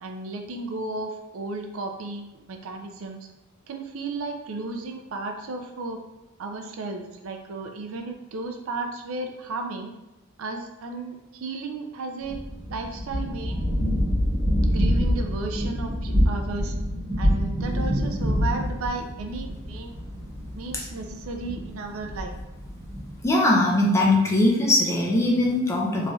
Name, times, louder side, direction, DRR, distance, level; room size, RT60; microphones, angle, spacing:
voice 1, 0.0-3.3 3.7-6.0 6.4-9.9 10.4-12.4 12.7-13.7 14.6-16.7 17.2-20.0 20.5-22.4, right 3 dB, 65° right, 4 dB, 0.4 m, -34 dB
sound 1, 12.2-23.3, equal, 20° right, 1.3 m, -26 dB
voice 2, 23.2-26.1, left 1 dB, 15° left, -2 dB, 0.4 m, -20 dB
3.1 x 2.6 x 2.3 m, 0.97 s
head